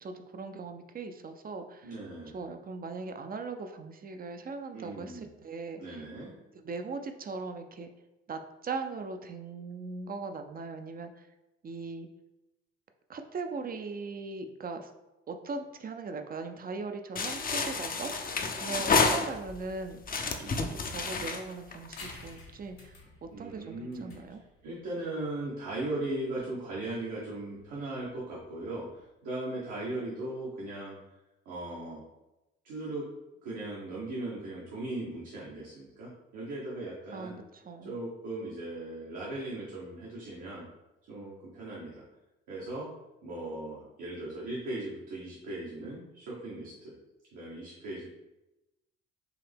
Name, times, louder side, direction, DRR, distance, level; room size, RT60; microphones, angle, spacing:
voice 1, 0.0-1.9 2.3-6.0 6.5-7.9 8.3-11.1 11.6-12.1 13.1-14.9 15.3-24.4 37.1-37.9, right 4 dB, 30° right, 7 dB, 0.6 m, -39 dB
voice 2, 1.8-2.4 4.7-5.3 5.8-6.3 18.7-18.9 20.4-20.7 23.3-24.1 24.6-31.0 31.4-32.0 32.6-33.1 33.4-37.4 37.8-40.6 41.1-42.0 42.5-42.9 43.2-46.9 47.3-48.1, right 2 dB, 65° right, -6 dB, 1.2 m, -38 dB
sound 1, 17.2-19.6 20.0-22.3, left 4 dB, 25° left, 0.6 m, -30 dB
sound 2, 22.0-29.1, left 2 dB, 80° left, 1.3 m, -53 dB
4.8 x 2.8 x 3.4 m, 0.99 s
hypercardioid pair, 55°, 32 cm